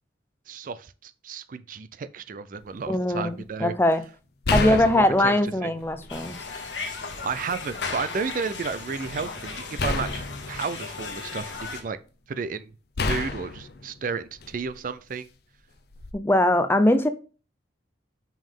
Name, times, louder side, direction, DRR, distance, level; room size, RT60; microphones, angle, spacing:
voice 1, 0.5-3.7 4.6-5.3 5.6-5.7 7.2-12.0 12.3-12.7 13.1-15.3, right 5 dB, 45° right, 0.4 m, -32 dB
sound 1, 2.6-2.9 4.4-6.3 6.8-7.7 9.8-11.7 13.0-14.8 15.9-16.1, left 3 dB, 55° left, 0.7 m, -30 dB
voice 2, 2.9-4.0 4.5-6.4 16.1-17.1, left 1 dB, 10° left, 0.5 m, -21 dB
sound 2, 6.1-11.8, left 4 dB, 75° left, 1.4 m, -36 dB
5.4 x 5.2 x 3.6 m
head